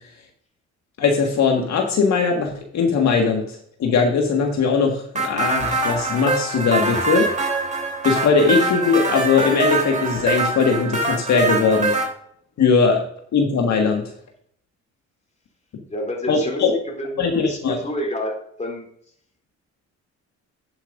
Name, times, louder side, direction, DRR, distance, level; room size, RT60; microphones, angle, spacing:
voice 1, 1.0-7.3 8.0-11.9 12.6-13.0 13.3-14.0 16.3-16.7 17.2-17.8, left 5 dB, 65° left, 2 dB, 1.7 m, -20 dB
sound 1, 5.2-12.1, right 3 dB, 25° right, 3.4 m, -23 dB
voice 2, 15.9-18.9, left 1 dB, 25° left, 1 dB, 3.2 m, -29 dB
11.0 x 9.0 x 2.6 m, 0.65 s
cardioid pair, 90°, 30 cm